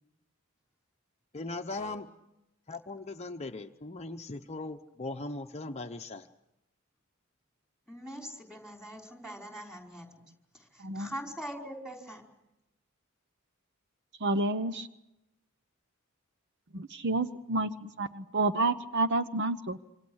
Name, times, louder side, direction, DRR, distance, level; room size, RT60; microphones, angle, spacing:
voice 1, 1.3-2.1 2.7-6.3, left 2 dB, 30° left, 5 dB, 0.8 m, -39 dB
voice 2, 7.9-10.1 10.5-12.3, equal, 5° right, 2 dB, 4.7 m, -43 dB
voice 3, 14.2-14.9 16.7-19.8, right 2 dB, 55° right, 11 dB, 0.9 m, -29 dB
27.0 x 26.0 x 6.4 m, 0.90 s
head